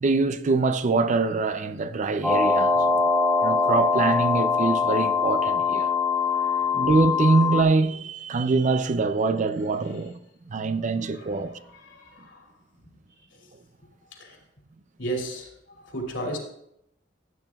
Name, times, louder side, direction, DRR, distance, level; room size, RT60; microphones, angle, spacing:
voice 1, 0.0-2.8 3.4-5.9 6.7-10.2 10.5-11.6, right 3 dB, 40° right, 0.5 m, -24 dB
sound 1, 2.2-7.6, left 4 dB, 5° left, 1.3 m, -23 dB
voice 2, 2.8-3.1 6.1-6.7 9.8-10.1 10.6-10.7 11.0-12.5 13.2-13.5 14.1-14.4 15.0-16.4, right 1 dB, 75° left, 2.7 m, -37 dB
15.5 x 8.8 x 2.3 m
head